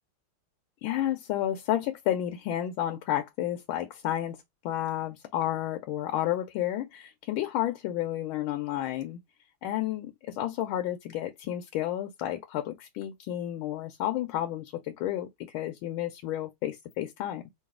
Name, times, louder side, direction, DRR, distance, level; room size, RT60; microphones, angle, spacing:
voice 1, 0.8-4.4 4.6-9.2 9.6-17.5, left 12 dB, 80° left, 1.3 m, -31 dB
3.9 x 2.3 x 3.6 m
omnidirectional pair, 2.3 m